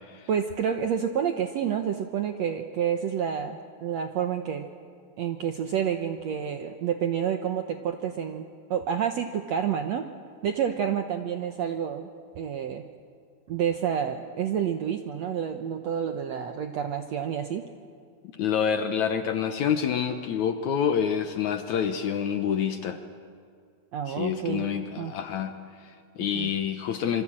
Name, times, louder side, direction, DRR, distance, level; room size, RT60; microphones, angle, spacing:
voice 1, 0.3-4.7 5.2-10.0 10.4-12.1 12.4-12.9 13.5-17.6 23.9-24.7 25.0-25.1 26.4-26.5, right 8 dB, 70° right, 6 dB, 1.6 m, -29 dB
voice 2, 18.3-23.0 24.1-27.2, left 8 dB, 70° left, 8 dB, 1.9 m, -27 dB
27.0 x 24.0 x 8.8 m, 2.2 s
omnidirectional pair, 4.3 m